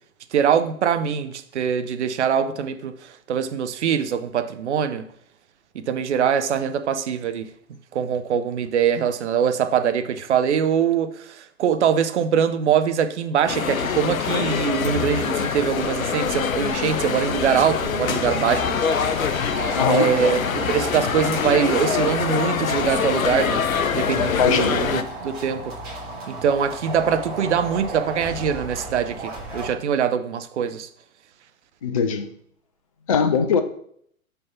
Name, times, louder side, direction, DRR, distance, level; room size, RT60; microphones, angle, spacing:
voice 1, 0.3-5.1 5.7-7.5 7.9-19.1 19.9-23.6 23.9-25.8 26.3-30.9, right 8 dB, 55° right, 0.7 m, -23 dB
sound 1, 13.5-25.0, left 7 dB, 70° left, 0.7 m, -24 dB
sound 2, 15.7-29.7, right 2 dB, 25° right, 3.0 m, -35 dB
voice 2, 19.7-20.1 24.4-24.8 31.8-32.3 33.1-33.6, left 6 dB, 25° left, 0.4 m, -21 dB
5.7 x 5.4 x 5.7 m
figure-of-eight pair, 110°, 43 cm